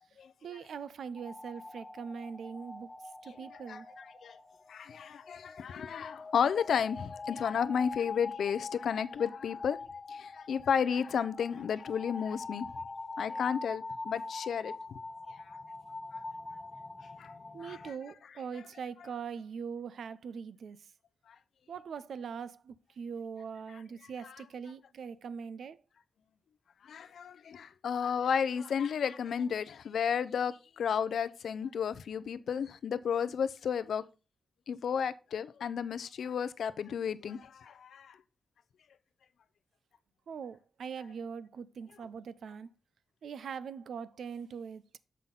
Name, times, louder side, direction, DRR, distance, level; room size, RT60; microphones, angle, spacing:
voice 1, 0.4-2.9 3.2-3.9 17.5-20.9 21.7-25.8 40.3-42.7 43.2-44.8, right 6 dB, 75° right, 0.4 m, -42 dB
sound 1, 1.2-17.9, left 3 dB, 25° left, 0.6 m, -44 dB
voice 2, 4.7-9.8 10.1-12.7 13.2-14.7 17.2-17.3 17.7-17.8 21.3-21.4 26.8-34.1 34.7-38.2, left 7 dB, 80° left, 0.5 m, -32 dB
7.3 x 5.6 x 3.9 m
wide cardioid pair, 150°, 0 cm